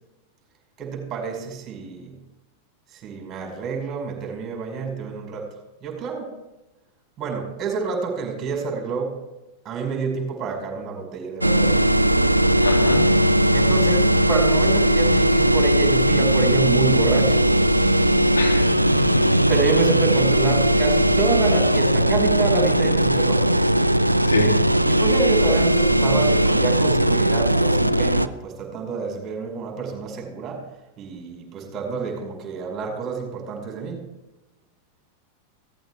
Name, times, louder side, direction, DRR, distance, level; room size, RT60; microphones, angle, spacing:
voice 1, 0.8-2.2 2.9-5.5 5.8-6.3 7.2-9.2 9.6-11.9 13.5-17.5 19.5-23.7 24.8-30.6 31.0-34.1, right 5 dB, 30° right, 1 dB, 5.1 m, -28 dB
sound 1, 11.4-28.3, right 1 dB, 85° right, 0.5 m, -18 dB
voice 2, 12.6-13.1 18.3-19.4 24.2-24.5, left 3 dB, 75° left, 0 dB, 3.2 m, -26 dB
17.0 x 14.5 x 3.6 m, 1.0 s
figure-of-eight pair, 90°, 0 cm